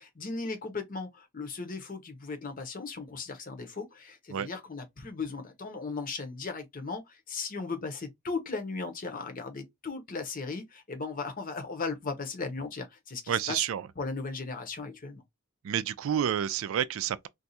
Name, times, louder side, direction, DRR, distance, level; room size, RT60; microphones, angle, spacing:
voice 1, 0.0-13.6 14.0-15.2, left 4 dB, 40° left, 0.8 m, -37 dB
voice 2, 13.3-13.9 15.6-17.3, right 9 dB, 65° right, 0.3 m, -29 dB
2.6 x 2.3 x 4.0 m
head